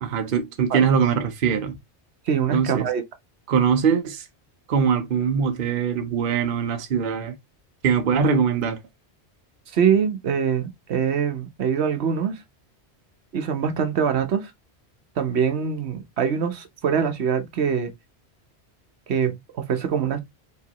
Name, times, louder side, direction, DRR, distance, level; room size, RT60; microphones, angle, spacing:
voice 1, 0.0-1.8 2.5-2.9 3.5-4.3 4.7-7.4 7.8-8.8, right 6 dB, 55° right, 0.8 m, -22 dB
voice 2, 2.3-3.0 9.7-12.4 13.3-14.5 15.2-17.9 19.1-20.2, right 7 dB, 75° right, 1.1 m, -24 dB
4.7 x 3.0 x 2.8 m
omnidirectional pair, 1.1 m